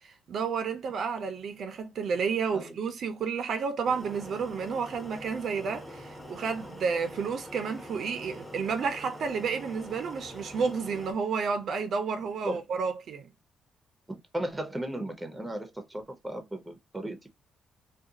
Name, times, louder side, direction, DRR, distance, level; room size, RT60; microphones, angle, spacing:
voice 1, 0.0-13.3, right 5 dB, 60° right, 0.5 m, -31 dB
sound 1, 3.8-11.1, equal, 15° left, 1.0 m, -45 dB
voice 2, 14.1-17.3, right 1 dB, 10° right, 0.7 m, -36 dB
2.4 x 2.2 x 2.7 m
cardioid pair, 90°, 0 cm